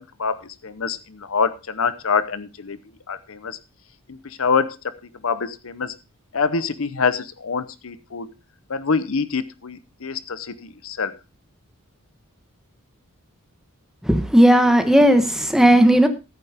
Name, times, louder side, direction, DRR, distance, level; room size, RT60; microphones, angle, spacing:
voice 1, 0.0-2.8 3.1-3.6 4.1-4.8 5.2-5.9 6.3-8.3 8.7-11.1, left 5 dB, 65° left, 14 dB, 0.8 m, -25 dB
voice 2, 14.0-16.1, right 1 dB, ahead, 7 dB, 1.1 m, -15 dB
13.5 x 8.8 x 3.5 m, 0.28 s
head